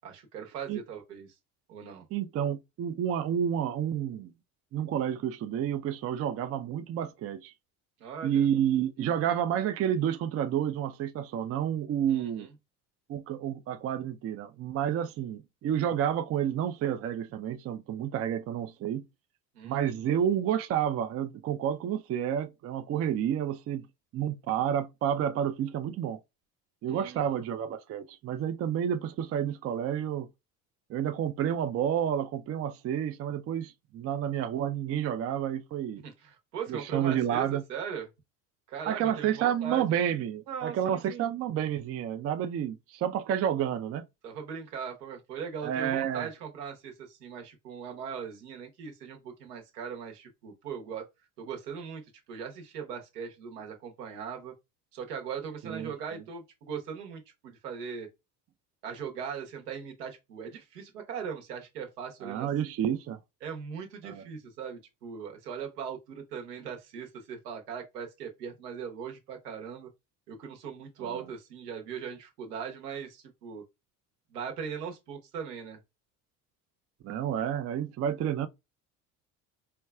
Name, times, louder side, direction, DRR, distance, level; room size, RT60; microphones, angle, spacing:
voice 1, 0.0-1.3 1.7-2.0 8.0-8.5 9.0-9.1 12.1-12.5 19.5-20.0 26.9-27.4 36.0-38.1 38.7-40.0 40.5-41.3 44.2-51.0 51.4-52.0 52.3-54.5 54.9-58.1 58.8-62.5 62.9-63.0 63.4-69.9 70.3-73.6 74.3-75.8, right 7 dB, 85° right, 1.0 m, -39 dB
voice 2, 2.1-4.3 4.7-7.5 8.2-12.5 13.1-19.1 19.6-23.9 24.1-26.2 26.8-30.3 30.9-36.0 36.7-37.6 38.9-44.1 45.6-46.3 55.6-55.9 62.2-63.2 64.0-64.2 71.0-71.2 77.0-78.5, right 9 dB, 35° right, 0.4 m, -30 dB
4.4 x 2.3 x 2.3 m
hypercardioid pair, 65°, 46 cm